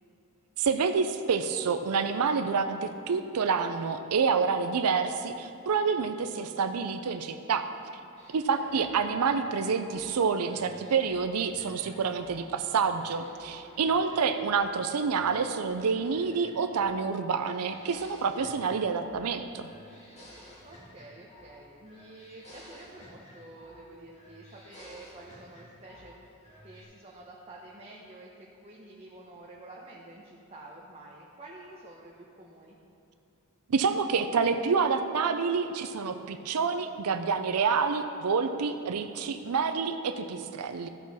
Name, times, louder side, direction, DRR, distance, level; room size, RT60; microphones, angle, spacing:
voice 1, 0.6-7.7 8.3-19.7 33.7-40.9, right 5 dB, 85° right, 8 dB, 0.5 m, -28 dB
sound 1, 8.2-12.4 12.7-14.7 15.0-17.0 17.3-19.3 19.6-21.6 21.9-23.9 24.1-26.1 26.4-26.8, left 1 dB, 30° left, 2.1 m, -53 dB
voice 2, 8.5-8.9 13.9-14.2 20.6-26.4 26.6-32.8, right 2 dB, 25° right, -4 dB, 0.9 m, -49 dB
14.5 x 6.3 x 4.1 m, 2.7 s
head